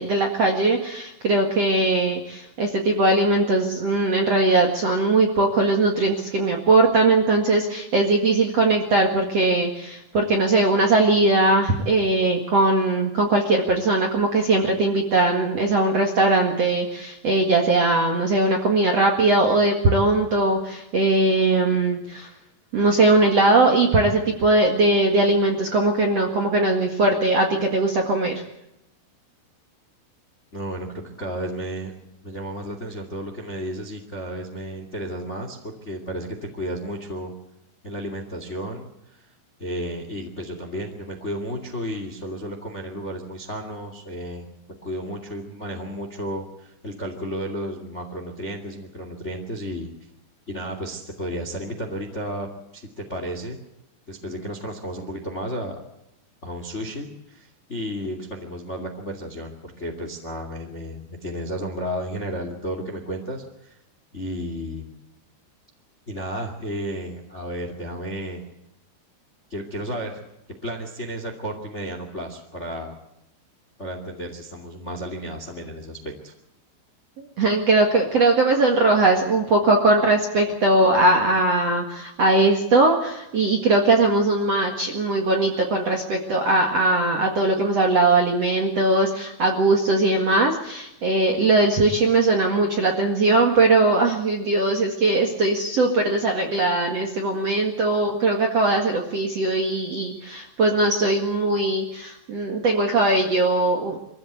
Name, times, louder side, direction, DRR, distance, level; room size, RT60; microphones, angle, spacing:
voice 1, 0.0-22.3 22.7-28.4 77.2-104.0, right 2 dB, 50° right, 2 dB, 2.0 m, -20 dB
voice 2, 30.5-31.9 32.2-37.3 37.8-39.2 39.6-44.5 44.8-49.9 50.5-52.5 52.7-53.6 54.1-55.8 56.4-63.8 64.1-64.9 66.1-68.4 69.5-70.2 70.6-72.9 73.8-76.0 76.2-76.3, equal, 25° left, 4 dB, 1.5 m, -33 dB
24.5 x 15.5 x 8.2 m, 0.87 s
omnidirectional pair, 5.5 m